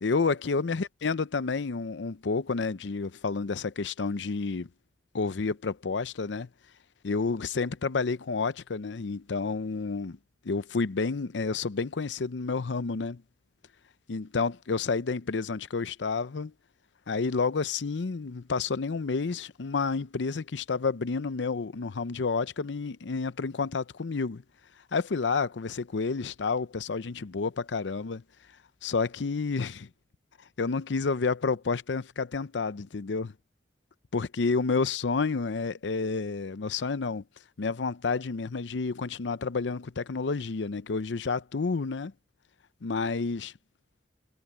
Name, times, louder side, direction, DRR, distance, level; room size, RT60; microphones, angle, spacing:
voice 1, 0.0-4.7 5.1-6.5 7.0-10.2 10.4-13.2 14.1-16.5 17.1-24.4 24.9-28.2 28.8-29.9 30.6-33.3 34.1-37.2 37.6-42.1 42.8-43.5, left 4 dB, 85° left, 0.6 m, -30 dB
head